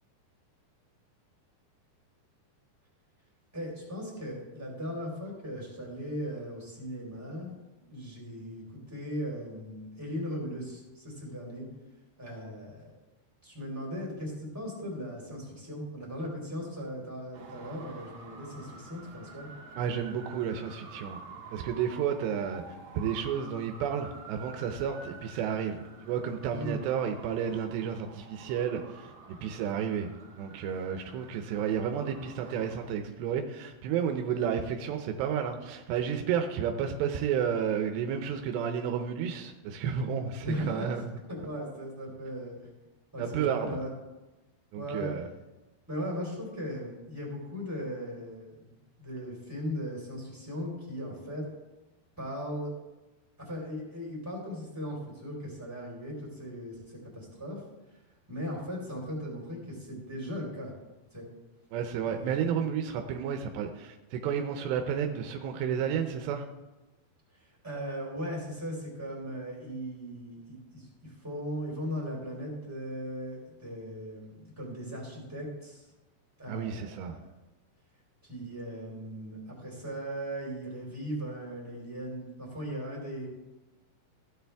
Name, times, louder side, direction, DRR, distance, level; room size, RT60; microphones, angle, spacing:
voice 1, 3.5-7.5 7.9-11.7 12.2-12.9 13.4-19.5 26.5-26.7 40.4-41.0 41.3-42.7 43.1-43.9 44.7-45.1 45.9-51.5 52.2-52.7 53.4-57.6 58.3-60.7 61.1-61.3 62.0-62.4 67.3-75.9 76.4-77.2 78.2-83.3, equal, 5° right, -3 dB, 3.3 m, -38 dB
Traffic noise roadway noise, 17.3-32.9, right 4 dB, 65° right, 2.9 m, -49 dB
voice 2, 19.8-21.2 21.5-22.6 22.9-30.1 30.4-41.0 43.2-43.8 44.7-45.2 61.7-66.5 76.5-77.2, right 8 dB, 85° right, 5 dB, 2.9 m, -31 dB
16.0 x 9.2 x 3.5 m, 1.1 s
omnidirectional pair, 4.8 m